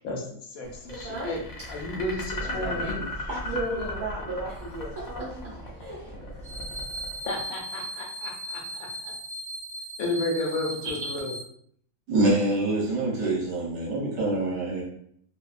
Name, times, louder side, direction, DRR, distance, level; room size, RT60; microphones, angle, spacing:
voice 1, 0.0-1.4 1.7-3.3 7.2-9.1 10.0-11.4, left 2 dB, 80° left, 1 dB, 1.1 m, -33 dB
Speech, 0.6-6.7, right 1 dB, 40° right, 0.6 m, -39 dB
sound 1, 0.9-8.0, left 2 dB, 55° left, 0.8 m, -37 dB
voice 2, 3.3-6.2, right 1 dB, 80° right, -5 dB, 0.4 m, -36 dB
sound 2, 6.4-11.4, right 1 dB, 10° left, 0.5 m, -37 dB
voice 3, 12.1-14.8, right 2 dB, 60° right, -4 dB, 1.0 m, -25 dB
2.7 x 2.3 x 2.4 m, 0.65 s
omnidirectional pair, 1.5 m